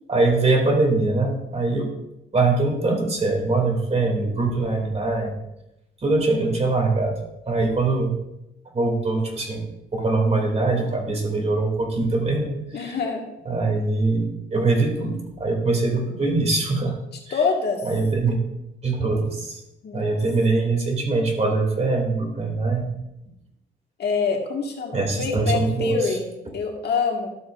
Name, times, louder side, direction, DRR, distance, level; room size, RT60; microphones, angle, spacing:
voice 1, 0.1-1.9 2.3-5.4 6.0-7.1 7.5-8.1 8.7-9.6 9.9-12.9 13.4-17.0 17.3-17.4 17.8-18.4 18.8-19.6 19.9-22.9 24.9-26.2, right 3 dB, 35° right, 2 dB, 2.5 m, -22 dB
voice 2, 12.7-13.2 17.3-17.9 19.8-20.2 24.0-27.3, left 5 dB, 55° left, 1 dB, 1.7 m, -26 dB
12.5 x 7.3 x 2.5 m, 0.88 s
cardioid pair, 90°, 20 cm